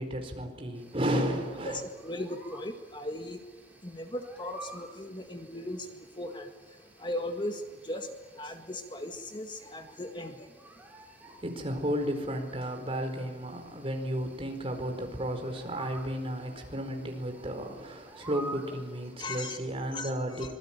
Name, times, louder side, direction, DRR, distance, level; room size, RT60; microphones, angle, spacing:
voice 1, 0.0-1.8 11.3-20.6, equal, 35° right, 4 dB, 4.6 m, -33 dB
sound 1, 0.7-19.1, right 1 dB, 10° right, 4.4 m, -51 dB
voice 2, 1.7-3.4 3.8-5.9 6.2-6.5 7.0-8.1 8.4-10.5 19.2-19.6 19.9-20.1 20.4-20.5, left 1 dB, 30° left, 5 dB, 1.8 m, -37 dB
25.5 x 22.0 x 9.0 m, 1.3 s
head